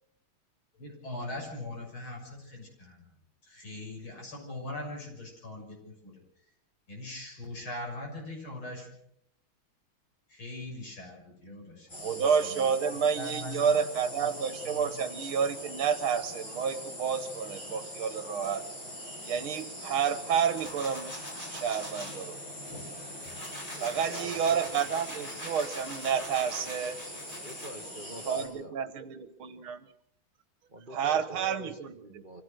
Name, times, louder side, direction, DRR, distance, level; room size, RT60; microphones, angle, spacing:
voice 1, 0.8-3.0 3.5-6.1 6.9-8.9 10.3-12.2 12.4-13.8 14.2-15.0, left 1 dB, 75° left, 0 dB, 7.4 m, -41 dB
sound 1, 11.9-28.5, left 1 dB, 60° left, 7.6 m, -42 dB
voice 2, 11.9-18.6 19.2-21.2 21.5-22.4 23.8-27.0 28.3-29.8 30.9-32.2, right 7 dB, 75° right, 11 dB, 2.1 m, -30 dB
sound 2, 20.6-22.2 22.7-27.7, equal, 15° left, 6.4 m, -43 dB
voice 3, 23.7-24.6 26.5-26.8 27.4-28.7 30.7-32.4, right 1 dB, 25° right, 5 dB, 1.4 m, -45 dB
25.5 x 16.0 x 6.5 m, 0.73 s
omnidirectional pair, 2.3 m